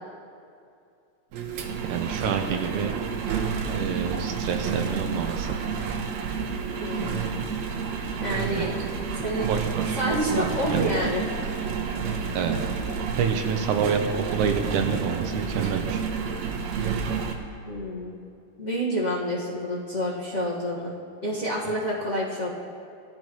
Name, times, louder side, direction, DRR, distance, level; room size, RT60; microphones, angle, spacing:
Engine, 1.3-17.3, right 6 dB, 70° right, 2.2 m, -30 dB
voice 1, 1.8-2.9 3.7-5.6 8.5-8.7 9.4-10.9 12.3-12.6 13.2-16.0, right 6 dB, 85° right, 5 dB, 2.4 m, -28 dB
voice 2, 6.8-7.4 8.2-8.7 9.1-9.5 10.0-11.2 17.6-18.2 18.6-20.9 21.2-22.5, equal, 30° left, -7 dB, 1.5 m, -28 dB
19.5 x 14.0 x 3.1 m, 2.5 s
omnidirectional pair, 3.5 m